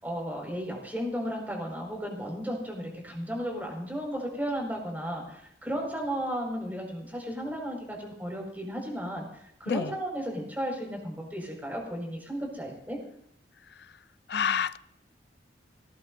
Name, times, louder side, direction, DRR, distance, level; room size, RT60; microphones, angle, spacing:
voice 1, 0.0-9.3 9.6-13.0, equal, 10° right, 5.6 m, -34 dB
voice 2, 14.3-14.8, left 6 dB, 60° left, 0.5 m, -28 dB
20.5 x 19.5 x 2.7 m
head